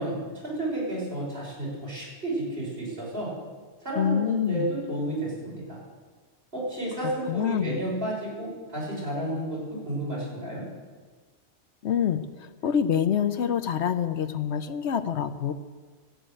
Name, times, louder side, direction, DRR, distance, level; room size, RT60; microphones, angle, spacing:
voice 1, 0.0-3.3 3.8-5.8 6.5-10.6, right 1 dB, 60° right, -5 dB, 6.1 m, -31 dB
voice 2, 4.0-4.7 7.3-7.8 11.8-12.2 12.6-15.5, left 8 dB, 80° left, 11 dB, 1.0 m, -26 dB
13.0 x 8.9 x 8.9 m, 1.4 s
omnidirectional pair, 1.2 m